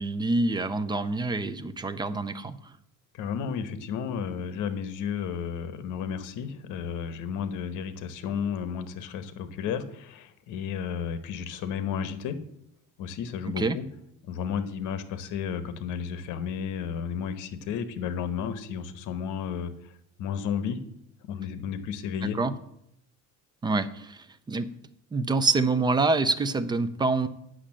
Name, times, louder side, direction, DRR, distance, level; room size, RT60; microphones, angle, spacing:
voice 1, 0.0-2.6 13.6-13.8 22.4-22.5 23.6-24.7 25.1-27.3, right 3 dB, 15° right, 12 dB, 0.4 m, -26 dB
voice 2, 3.1-12.4 13.0-13.8 14.3-19.9 20.2-20.8 21.2-22.4, left 7 dB, 70° left, 12 dB, 1.1 m, -32 dB
8.4 x 6.4 x 7.4 m, 0.75 s
cardioid pair, 155°, 32 cm